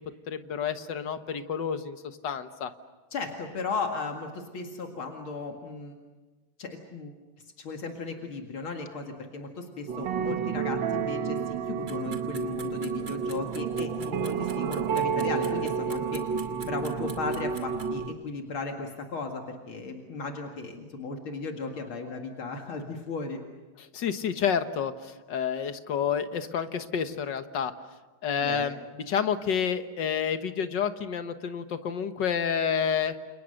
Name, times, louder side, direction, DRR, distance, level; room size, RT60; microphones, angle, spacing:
voice 1, 0.3-2.7 10.3-10.5 23.8-27.7 28.2-28.8 29.1-33.1, left 7 dB, 60° left, 9 dB, 1.9 m, -29 dB
voice 2, 3.1-6.0 6.6-7.1 7.6-16.3 16.6-23.4 28.4-28.7, left 4 dB, 75° left, 3 dB, 2.9 m, -36 dB
sound 1, 9.9-18.1, right 6 dB, 65° right, 1.9 m, -30 dB
sound 2, 11.9-17.9, right 4 dB, 45° right, 3.1 m, -45 dB
29.5 x 28.5 x 6.6 m, 1.3 s
omnidirectional pair, 2.3 m